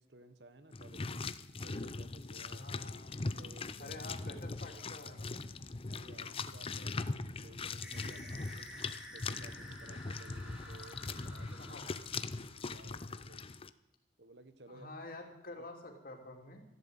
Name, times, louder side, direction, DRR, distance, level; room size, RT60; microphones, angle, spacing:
voice 1, 0.0-2.7 3.4-4.0 5.9-11.8 12.6-13.4 14.2-14.9 15.6-15.7, right 2 dB, 70° right, 11 dB, 1.3 m, -57 dB
sound 1, 0.7-13.7, left 3 dB, 30° left, 0.6 m, -41 dB
voice 2, 2.5-3.2 3.8-5.7 11.6-11.9 14.7-16.6, left 2 dB, 50° left, 2 dB, 3.1 m, -49 dB
sound 2, 7.8-12.7, left 1 dB, 5° right, 2.5 m, -51 dB
14.0 x 11.5 x 8.9 m, 0.86 s
head